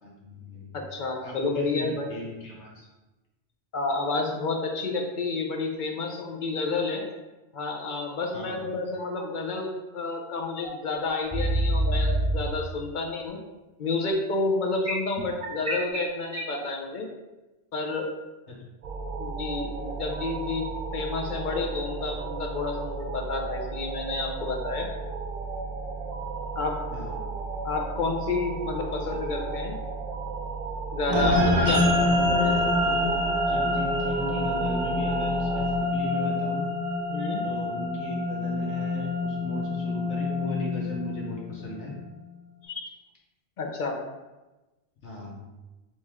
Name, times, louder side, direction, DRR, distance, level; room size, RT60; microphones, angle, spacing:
voice 1, 0.0-0.7 1.2-2.9 8.3-8.7 18.5-18.6 26.9-27.2 31.4-32.3 33.5-36.7 37.4-42.0 45.0-45.4, left 1 dB, 80° left, -3 dB, 1.4 m, -37 dB
voice 2, 0.7-2.1 3.7-7.0 7.5-13.4 13.8-17.1 17.7-18.1 19.2-20.7 20.9-24.9 26.6-26.7 27.6-29.8 30.9-32.5 37.1-37.4 42.6-42.9 43.6-44.0, left 3 dB, 55° left, 2 dB, 0.6 m, -30 dB
sound 1, 10.6-10.7 11.3-12.3 14.8-16.6, right 1 dB, 5° right, 1.0 m, -25 dB
sound 2, 18.8-35.8, right 4 dB, 65° right, 0.4 m, -34 dB
sound 3, 31.1-41.7, left 1 dB, 85° right, 1.2 m, -26 dB
4.1 x 3.1 x 3.5 m, 1.1 s
omnidirectional pair, 1.2 m